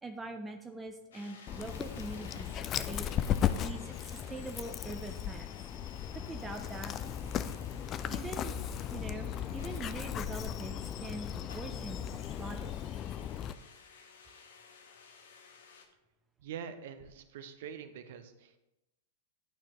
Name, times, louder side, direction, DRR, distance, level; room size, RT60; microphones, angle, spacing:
voice 1, 0.0-3.1 3.6-5.5 6.3-6.9 8.1-8.5 8.9-12.8, right 2 dB, 15° right, 4 dB, 0.6 m, -43 dB
sound 1, 1.1-15.8, left 5 dB, 70° left, 0.9 m, -55 dB
Dog, 1.5-13.5, left 9 dB, 30° left, 0.3 m, -36 dB
voice 2, 16.4-18.6, right 8 dB, 60° right, 10 dB, 0.7 m, -44 dB
11.5 x 4.4 x 3.1 m, 0.95 s
figure-of-eight pair, 95°, 0 cm